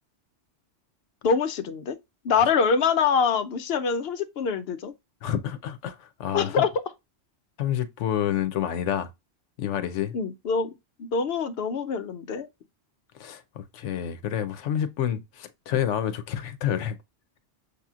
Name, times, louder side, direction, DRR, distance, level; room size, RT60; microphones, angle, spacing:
voice 1, 1.2-2.0 2.2-4.9 6.3-6.7 10.1-10.7 11.0-12.5, left 6 dB, 65° left, 0.8 m, -24 dB
voice 2, 5.2-6.7 7.6-9.1 9.6-10.1 13.2-16.9, left 10 dB, 90° left, 1.0 m, -28 dB
6.6 x 2.8 x 2.4 m
omnidirectional pair, 1.2 m